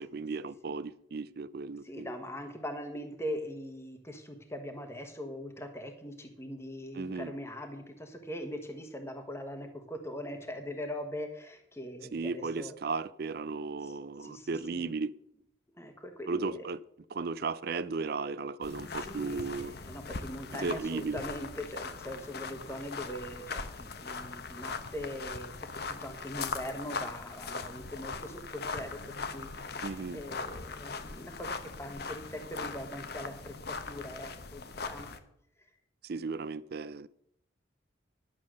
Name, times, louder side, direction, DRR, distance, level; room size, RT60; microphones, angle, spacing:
voice 1, 0.0-2.1 6.9-7.3 12.1-15.1 16.3-16.8 17.1-19.7 20.5-21.2 29.8-30.2 36.0-37.1, right 4 dB, 50° right, 0.4 m, -35 dB
voice 2, 1.8-12.7 13.8-13.9 14.2-14.9 15.8-16.7 19.0-35.1, equal, 15° left, 1.2 m, -41 dB
sound 1, 18.6-35.2, left 4 dB, 50° left, 0.9 m, -40 dB
11.0 x 7.6 x 6.3 m
head